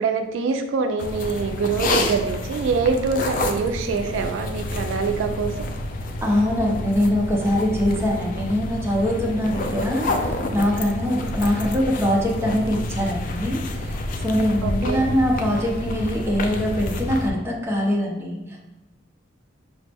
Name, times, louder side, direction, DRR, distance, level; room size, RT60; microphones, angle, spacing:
voice 1, 0.0-5.7 14.6-15.0, right 5 dB, 75° right, 6 dB, 0.3 m, -24 dB
sound 1, 1.0-17.3, left 2 dB, 45° left, 0.3 m, -29 dB
voice 2, 6.2-18.6, equal, 15° right, -2 dB, 0.6 m, -23 dB
4.9 x 2.1 x 3.4 m, 1.0 s
head